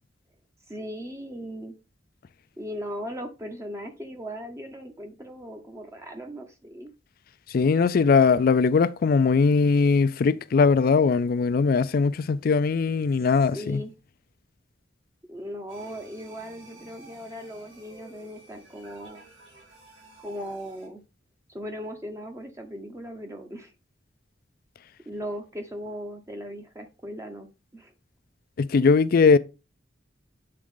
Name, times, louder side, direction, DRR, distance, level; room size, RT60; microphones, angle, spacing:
voice 1, 0.7-1.7 2.6-6.9 13.5-13.9 15.3-19.2 20.2-21.0 21.5-23.7 25.1-27.5 27.7-27.9, equal, 15° right, 0.7 m, -38 dB
voice 2, 7.5-13.8 28.6-29.4, left 5 dB, 50° left, 0.4 m, -20 dB
sound 1, 15.7-20.9, right 2 dB, 75° right, 4.1 m, -52 dB
7.7 x 3.6 x 3.7 m
head